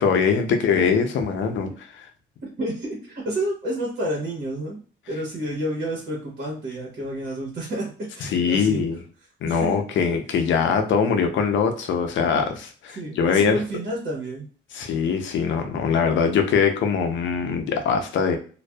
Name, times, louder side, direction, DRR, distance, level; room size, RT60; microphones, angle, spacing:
voice 1, 0.0-2.0 8.2-9.0 9.4-13.6 14.7-18.4, left 6 dB, 70° left, 6 dB, 0.6 m, -22 dB
voice 2, 2.4-4.8 5.1-8.9 9.5-9.8 12.9-14.5, right 1 dB, 55° right, -3 dB, 1.1 m, -30 dB
2.5 x 2.2 x 2.2 m, 0.39 s
cardioid pair, 90°, 20 cm